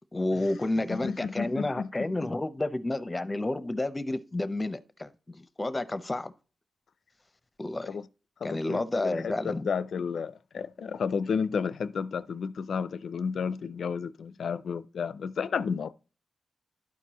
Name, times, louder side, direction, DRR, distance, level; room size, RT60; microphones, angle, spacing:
voice 1, 0.1-6.3 7.6-7.9 8.4-9.7, left 2 dB, 20° left, 0.6 m, -30 dB
voice 2, 0.9-2.3 7.9-8.1 8.4-15.9, left 6 dB, 75° left, 0.4 m, -32 dB
12.0 x 4.6 x 2.9 m
cardioid pair, 80°, 0 cm